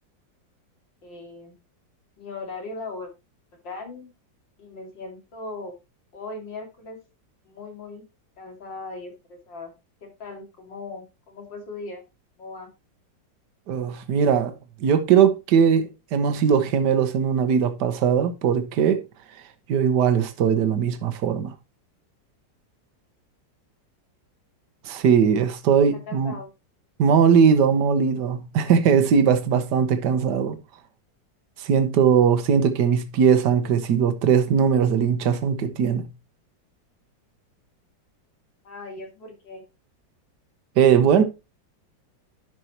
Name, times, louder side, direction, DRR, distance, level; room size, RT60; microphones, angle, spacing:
voice 1, 1.0-1.6 2.2-3.1 3.6-4.1 4.6-5.7 6.1-7.0 7.4-8.1 8.4-9.7 10.0-12.0 12.4-12.7 26.1-26.5 38.6-39.6, left 3 dB, 80° left, 3.1 m, -38 dB
voice 2, 13.7-14.5 14.8-19.0 19.7-21.5 24.8-26.3 27.0-30.6 31.6-36.1 40.8-41.2, right 7 dB, 70° right, 1.6 m, -20 dB
11.0 x 6.1 x 3.0 m
omnidirectional pair, 2.0 m